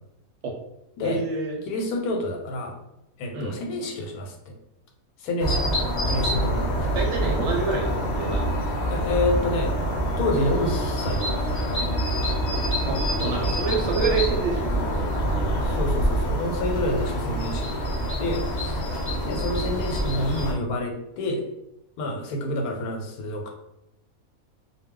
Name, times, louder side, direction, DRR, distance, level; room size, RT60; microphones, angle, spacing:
voice 1, 1.0-1.6 3.3-3.6 6.9-8.5 12.9-15.1, right 4 dB, 65° right, 0 dB, 0.8 m, -28 dB
voice 2, 1.7-2.7 3.2-4.3 5.2-5.7 6.1-6.7 8.9-9.7 10.2-11.9 15.6-17.9 18.2-18.8 19.2-21.4 22.0-23.5, left 1 dB, 85° left, 2 dB, 1.1 m, -28 dB
sound 1, 5.4-20.5, equal, 55° left, 0.5 m, -26 dB
2.3 x 2.1 x 3.6 m, 0.86 s
omnidirectional pair, 1.5 m